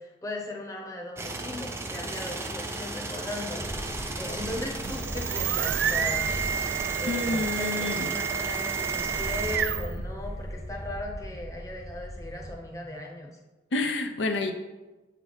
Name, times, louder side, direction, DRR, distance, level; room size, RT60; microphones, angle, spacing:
voice 1, 0.0-3.6 3.9-6.3 7.0-13.4, left 2 dB, 20° left, 0 dB, 0.7 m, -38 dB
sound 1, 1.1-9.6, right 2 dB, 15° right, 0.4 m, -35 dB
sound 2, 3.6-12.5, equal, 40° left, 1.0 m, -39 dB
sound 3, 4.7-10.0, right 9 dB, 80° right, 0.3 m, -30 dB
voice 2, 7.0-8.1 13.7-14.5, left 3 dB, 90° left, 6 dB, 0.5 m, -28 dB
7.9 x 3.3 x 4.0 m, 1.2 s
head